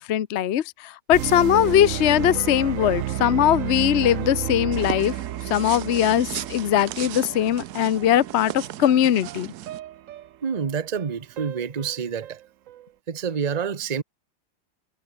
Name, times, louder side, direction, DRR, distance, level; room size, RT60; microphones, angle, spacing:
voice 1, 0.0-5.1 5.5-9.5, left 11 dB, 70° left, 0.6 m, -21 dB
sound 1, 1.1-12.8, right 12 dB, 85° right, 0.7 m, -32 dB
sound 2, 4.7-9.8, right 13 dB, 65° right, 1.0 m, -36 dB
voice 2, 10.4-12.4 13.1-14.0, right 6 dB, 30° right, 0.7 m, -28 dB
omnidirectional pair, 2.2 m